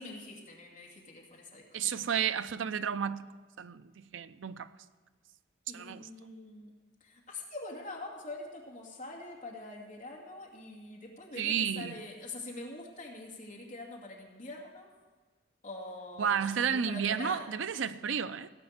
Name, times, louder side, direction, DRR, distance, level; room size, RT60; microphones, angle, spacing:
voice 1, 0.0-2.0 5.7-6.7 7.0-14.9 15.6-17.5, left 2 dB, 40° left, 2.3 m, -44 dB
voice 2, 1.7-3.3 3.6-4.7 5.7-6.1 11.4-12.0 16.2-18.5, right 7 dB, 90° right, 0.5 m, -32 dB
16.5 x 5.8 x 8.1 m
head